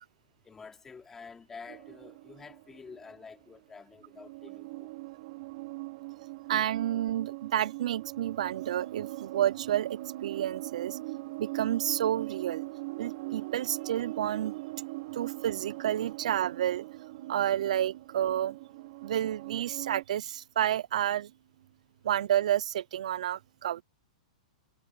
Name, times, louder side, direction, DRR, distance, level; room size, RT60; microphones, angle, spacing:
voice 1, 0.4-4.9, left 5 dB, 10° left, 3.2 m, -49 dB
sound 1, 1.7-3.6 4.0-20.0, right 22 dB, 45° right, 2.7 m, -41 dB
voice 2, 6.5-12.6 13.0-14.5 15.1-21.3 22.0-23.8, right 11 dB, 70° right, 0.5 m, -30 dB
hypercardioid pair, 160°, 4 cm